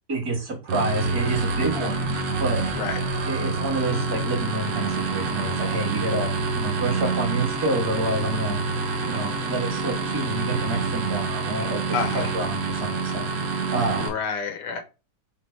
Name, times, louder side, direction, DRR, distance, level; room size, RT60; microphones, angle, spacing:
voice 1, 0.1-2.1 2.4-2.6 3.3-6.3 6.5-8.6 9.0-11.8 12.1-13.3 13.7-14.0, right 2 dB, 55° right, 2.2 m, -28 dB
sound 1, 0.7-14.1, right 4 dB, 75° right, 1.6 m, -27 dB
voice 2, 11.9-12.3 14.0-14.8, left 5 dB, 70° left, 1.4 m, -29 dB
5.0 x 2.2 x 4.5 m
omnidirectional pair, 2.0 m